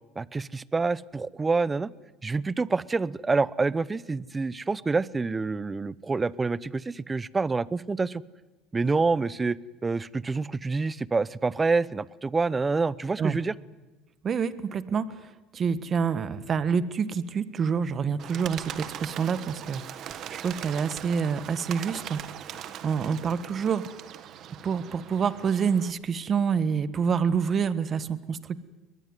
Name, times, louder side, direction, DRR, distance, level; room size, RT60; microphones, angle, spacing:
voice 1, 0.2-1.9 2.2-8.2 8.7-13.5, right 4 dB, 20° right, 20 dB, 0.8 m, -27 dB
voice 2, 14.2-23.9 24.6-28.6, right 6 dB, 35° right, 14 dB, 1.5 m, -27 dB
Bird, 18.2-25.9, right 10 dB, 55° right, 1.7 m, -40 dB
22.0 x 20.5 x 9.7 m, 1.2 s
supercardioid pair, 100°, 0 cm